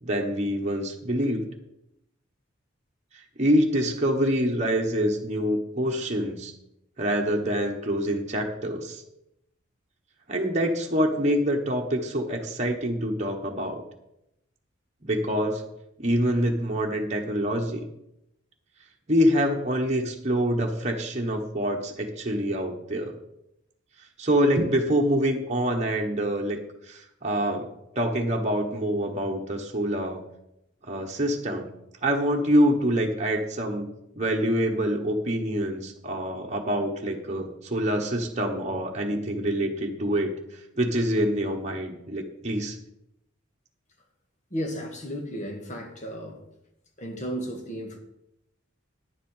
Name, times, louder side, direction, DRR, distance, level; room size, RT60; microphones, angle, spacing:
voice 1, 0.0-1.5 3.4-6.5 7.0-9.0 10.3-13.8 15.0-15.6 16.0-17.8 19.1-23.2 24.2-26.6 26.9-27.7 27.9-30.2 30.8-31.7 32.0-33.9 34.2-40.3 40.8-42.8, equal, 35° right, 0 dB, 1.2 m, -26 dB
voice 2, 44.5-46.4 47.0-48.0, equal, 35° left, 3 dB, 1.8 m, -34 dB
10.0 x 7.4 x 5.5 m, 0.81 s
head